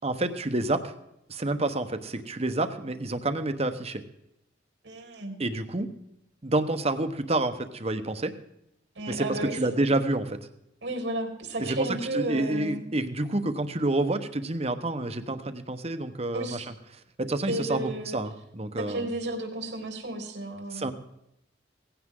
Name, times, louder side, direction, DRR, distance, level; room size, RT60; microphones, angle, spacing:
voice 1, 0.0-0.9 1.3-4.0 5.4-5.9 6.4-8.3 9.1-10.4 11.6-11.9 12.1-16.6 17.2-19.1 20.7-20.9, right 2 dB, 35° right, 9 dB, 1.1 m, -28 dB
voice 2, 4.8-5.3 8.9-9.7 10.8-12.8 16.3-16.7 17.5-18.2 18.8-20.9, right 1 dB, 85° right, 2 dB, 3.4 m, -33 dB
18.0 x 16.0 x 3.8 m, 0.81 s
head